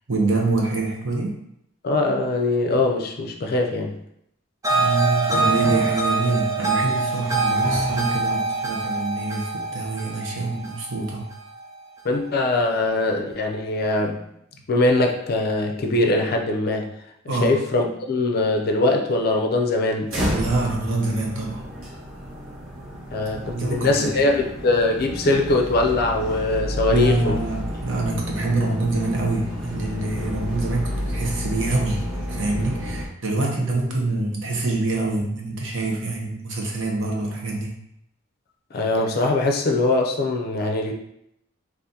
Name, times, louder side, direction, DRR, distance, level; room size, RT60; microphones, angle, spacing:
voice 1, 0.1-1.3 4.7-11.2 17.3-17.5 20.3-21.6 23.5-24.2 26.9-37.7, right 2 dB, 65° right, -1 dB, 0.8 m, -25 dB
voice 2, 1.8-4.0 12.0-14.2 14.7-16.9 17.2-20.1 23.1-27.4 38.7-40.9, left 2 dB, 45° left, 2 dB, 0.4 m, -22 dB
sound 1, 4.6-11.8, right 3 dB, 15° right, 0.3 m, -24 dB
sound 2, 20.1-33.1, equal, 85° right, 1.0 m, -31 dB
3.7 x 2.5 x 2.7 m, 0.77 s
head